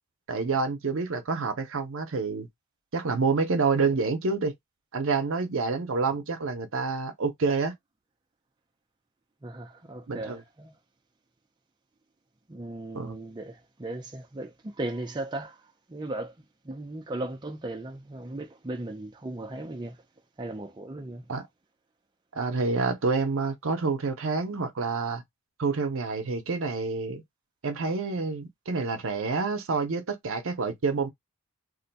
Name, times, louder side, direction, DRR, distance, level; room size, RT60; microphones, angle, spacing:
voice 1, 0.3-2.5 2.9-4.5 4.9-7.7 10.1-10.4 12.9-13.2 21.3-21.4 22.3-25.2 25.6-27.2 27.6-31.1, right 4 dB, 60° right, 0.6 m, -28 dB
voice 2, 9.4-10.8 12.5-16.3 16.6-20.0 20.4-21.3, right 2 dB, 20° right, 0.4 m, -37 dB
2.5 x 2.2 x 3.9 m
head